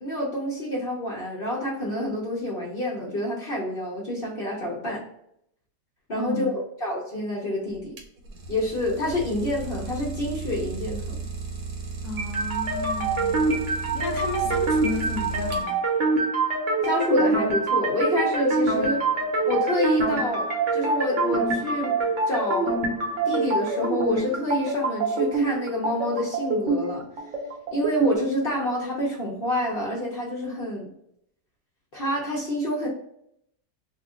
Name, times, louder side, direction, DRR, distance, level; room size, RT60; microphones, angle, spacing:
voice 1, 0.0-5.0 6.1-7.9 8.5-11.2 16.8-19.1 19.5-22.0 22.3-22.8 23.2-27.1 27.7-30.9 31.9-32.9, left 1 dB, 45° left, 0.7 m, -28 dB
Idling, 7.7-16.0, right 4 dB, 75° right, 1.3 m, -35 dB
voice 2, 12.0-13.5 13.9-15.8, left 3 dB, 70° left, 1.1 m, -33 dB
sound 1, 12.2-28.2, right 3 dB, 55° right, 0.9 m, -25 dB
2.8 x 2.5 x 3.6 m
omnidirectional pair, 1.9 m